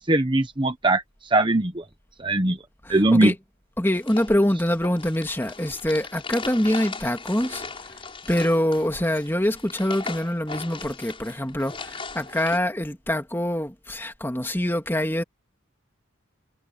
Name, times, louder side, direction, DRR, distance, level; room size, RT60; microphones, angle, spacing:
voice 1, 0.0-1.8 2.2-2.6 2.9-3.3, right 2 dB, 25° right, 1.1 m, -21 dB
voice 2, 2.8-3.4 3.8-7.6 8.3-15.2, left 1 dB, 10° left, 2.2 m, -25 dB
sound 1, 3.9-12.6, left 4 dB, 25° left, 6.7 m, -38 dB
head